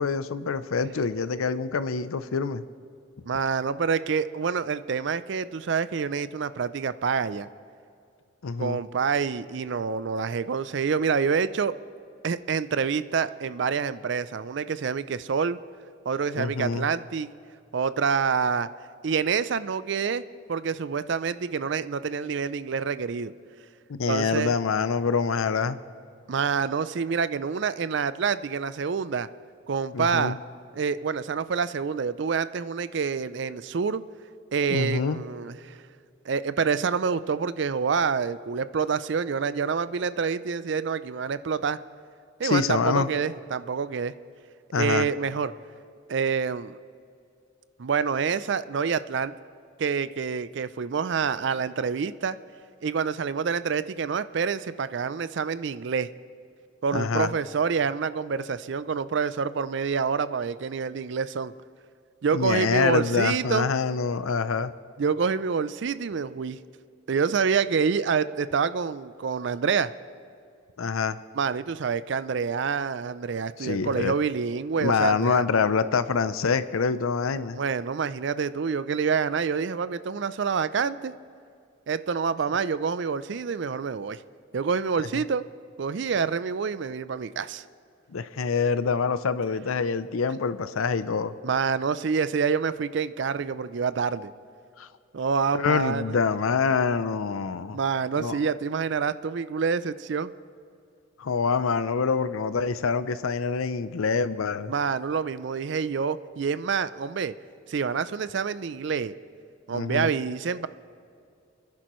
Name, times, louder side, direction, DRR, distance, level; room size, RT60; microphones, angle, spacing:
voice 1, 0.0-2.6 8.4-8.8 16.4-16.9 23.9-25.8 29.9-30.4 34.7-35.2 42.4-43.1 44.7-45.1 56.9-57.3 62.3-64.7 70.8-71.2 73.6-74.1 74.8-77.6 88.1-91.3 94.8-94.9 95.5-97.8 98.2-98.4 101.2-104.7 109.7-110.1, left 5 dB, 85° left, 13 dB, 0.6 m, -26 dB
voice 2, 3.3-7.5 8.6-11.7 12.2-15.6 16.1-17.3 17.7-18.7 19.0-20.2 20.5-23.3 24.1-24.5 26.3-29.3 29.7-30.4 30.7-34.0 34.5-35.8 36.3-41.8 42.4-44.1 44.7-45.5 46.1-46.8 47.8-49.3 49.8-52.4 52.8-56.1 56.8-61.5 62.2-63.7 65.0-66.6 67.1-69.9 71.3-75.4 77.5-81.1 81.9-84.2 84.5-85.5 85.8-87.6 91.4-94.3 95.1-96.2 97.7-100.3 104.7-107.3 107.7-109.1 109.7-110.7, right 6 dB, 60° right, 15 dB, 0.4 m, -27 dB
29.5 x 10.5 x 3.1 m, 2.4 s
head